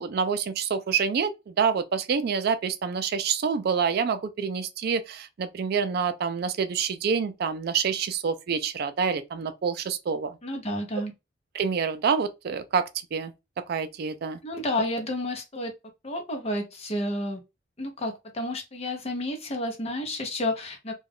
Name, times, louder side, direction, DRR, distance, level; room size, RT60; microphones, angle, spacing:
voice 1, 0.0-10.4 11.5-13.3 13.7-14.4, right 6 dB, 55° right, 0.4 m, -27 dB
voice 2, 10.4-11.1 14.4-15.7 16.0-17.4 17.8-20.9, left 1 dB, 35° left, 0.7 m, -30 dB
2.3 x 2.3 x 3.4 m
head